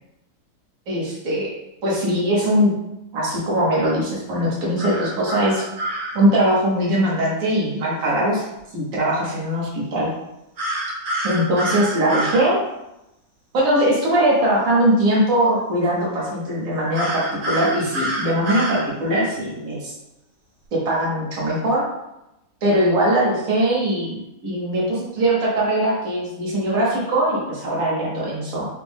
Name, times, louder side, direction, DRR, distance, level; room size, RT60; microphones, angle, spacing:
voice 1, 0.9-1.5 1.8-2.7 3.1-5.7 6.1-8.4 8.7-10.1 11.2-12.6 13.5-19.9 20.7-21.8 22.6-28.7, right 1 dB, 50° right, -5 dB, 1.6 m, -21 dB
sound 1, 4.8-6.2 10.6-12.5 16.9-18.8, right 1 dB, 75° right, 2.4 m, -27 dB
5.2 x 2.5 x 3.5 m, 0.90 s
omnidirectional pair, 2.0 m